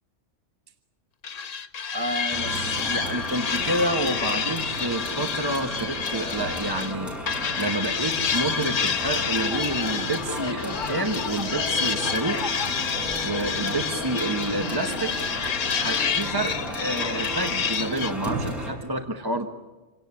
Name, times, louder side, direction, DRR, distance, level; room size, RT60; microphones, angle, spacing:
sound 1, 1.2-6.9 7.3-18.1, left 6 dB, 85° left, 1.5 m, -29 dB
voice 1, 1.9-15.1 15.7-19.5, right 2 dB, 20° right, 6 dB, 1.1 m, -29 dB
sound 2, 2.3-18.7, equal, ahead, 6.3 m, -34 dB
sound 3, 9.0-16.0, left 5 dB, 40° left, 1.2 m, -36 dB
27.0 x 18.0 x 9.8 m, 1.2 s
omnidirectional pair, 1.3 m